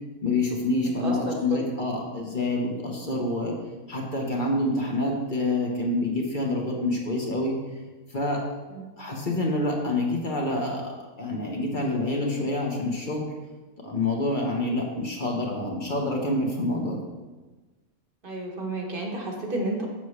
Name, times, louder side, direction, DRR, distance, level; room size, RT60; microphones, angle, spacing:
voice 1, 0.2-3.6 3.9-7.6 8.1-8.4 9.0-13.2 13.8-17.0, left 2 dB, 40° left, 0 dB, 1.0 m, -27 dB
voice 2, 1.0-1.3 8.7-8.9 18.2-19.9, right 2 dB, 40° right, 0 dB, 1.2 m, -31 dB
7.2 x 7.0 x 3.2 m, 1.2 s
omnidirectional pair, 1.5 m